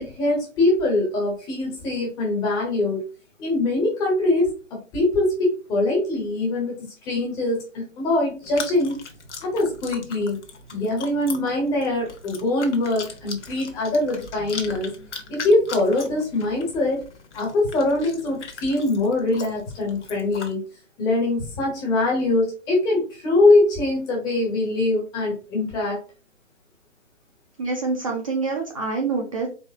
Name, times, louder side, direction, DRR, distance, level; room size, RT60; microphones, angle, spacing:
voice 1, 0.0-3.0 3.4-9.0 9.4-10.4 10.7-14.9 15.3-17.0 17.3-20.6 21.0-26.0, left 2 dB, 10° left, -1 dB, 0.7 m, -23 dB
Chewing mastication, 8.4-20.5, left 5 dB, 60° left, 1.0 m, -39 dB
voice 2, 27.6-29.5, right 4 dB, 25° right, 0 dB, 0.5 m, -26 dB
4.1 x 3.1 x 2.8 m, 0.34 s
figure-of-eight pair, 140°, 39 cm